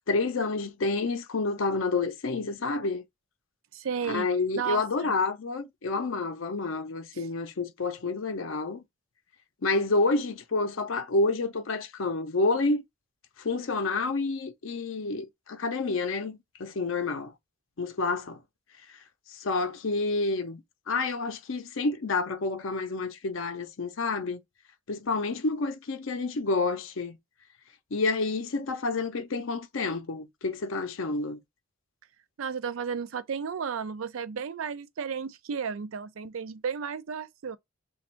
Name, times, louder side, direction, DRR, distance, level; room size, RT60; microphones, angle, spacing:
voice 1, 0.1-3.0 4.0-8.8 9.6-12.8 13.4-17.3 17.8-18.4 18.9-19.0 19.3-20.6 20.9-24.4 24.9-27.2 27.9-31.4, left 3 dB, 65° left, 0.6 m, -29 dB
voice 2, 3.7-4.3 4.6-5.1 7.1-7.3 32.4-37.6, right 6 dB, 70° right, 0.4 m, -33 dB
3.4 x 2.3 x 4.3 m
head